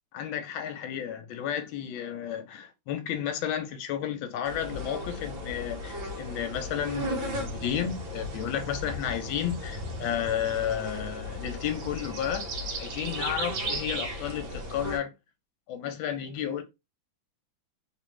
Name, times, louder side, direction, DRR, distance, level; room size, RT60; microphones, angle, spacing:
voice 1, 0.1-12.4 12.8-15.1 15.7-16.6, left 9 dB, 80° left, 1.4 m, -32 dB
sound 1, 4.4-15.0, equal, 75° right, 1.7 m, -35 dB
3.6 x 2.5 x 3.1 m
omnidirectional pair, 2.2 m